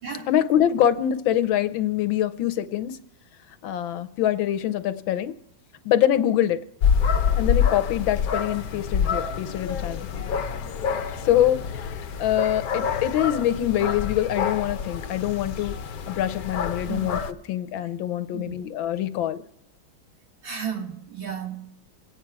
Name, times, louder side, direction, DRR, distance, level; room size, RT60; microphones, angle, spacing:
voice 1, 0.3-3.0 3.6-5.3 5.8-6.6 7.4-10.1 11.2-11.9 12.2-15.8 16.1-17.2 17.5-19.4, left 11 dB, 75° left, 1.4 m, -24 dB
sound 1, 6.8-17.3, left 7 dB, 55° left, 1.1 m, -27 dB
voice 2, 20.4-21.7, right 7 dB, 70° right, 3.4 m, -33 dB
25.5 x 9.2 x 4.6 m
omnidirectional pair, 2.3 m